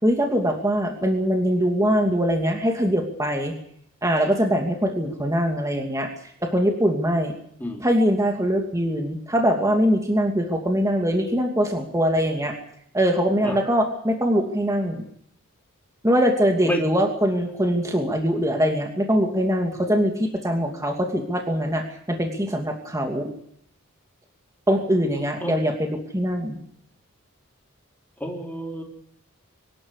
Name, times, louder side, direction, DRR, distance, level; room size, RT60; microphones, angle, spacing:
voice 1, 0.0-3.5 4.0-6.1 6.4-7.4 7.8-12.5 12.9-15.0 16.0-23.3 24.7-26.6, equal, 15° right, 2 dB, 2.6 m, -22 dB
voice 2, 28.2-28.8, equal, 10° left, 0 dB, 4.5 m, -28 dB
25.0 x 12.0 x 9.8 m, 0.65 s
head